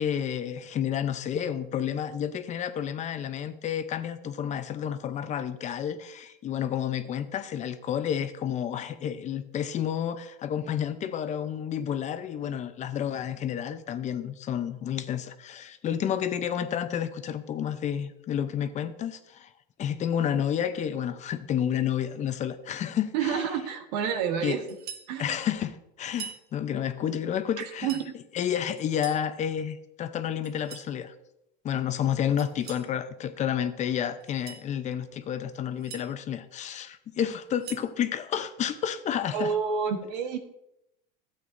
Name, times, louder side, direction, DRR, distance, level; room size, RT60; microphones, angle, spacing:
voice 1, 0.0-19.5 19.8-23.4 24.4-24.6 25.2-27.9 28.3-31.1 31.6-39.5, left 9 dB, 35° left, 11 dB, 0.7 m, -30 dB
voice 2, 23.1-24.6 25.1-25.3 27.6-28.1 39.3-40.4, right 7 dB, 85° right, 7 dB, 1.3 m, -29 dB
sound 1, 24.7-25.1 26.1-26.4 27.6-28.1 28.8-29.3 30.4-30.9 32.4-32.9 34.2-34.7 35.5-36.1 37.3-37.9, right 8 dB, 50° right, 1.0 m, -43 dB
12.5 x 8.3 x 2.6 m, 0.82 s
supercardioid pair, 130°, 21 cm